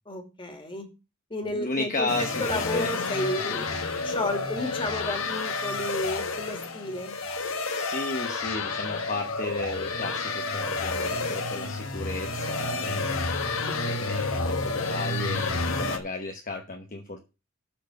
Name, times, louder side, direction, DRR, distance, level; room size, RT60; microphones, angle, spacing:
voice 1, 0.1-0.9 1.3-3.8 4.0-7.2 13.7-13.9, left 1 dB, 25° left, 4 dB, 2.4 m, -32 dB
voice 2, 1.5-2.9 7.7-13.2 13.8-17.2, left 2 dB, 40° left, 5 dB, 1.0 m, -34 dB
sound 1, 2.1-16.0, left 3 dB, 85° left, 1.4 m, -30 dB
12.5 x 4.7 x 6.6 m, 0.30 s
head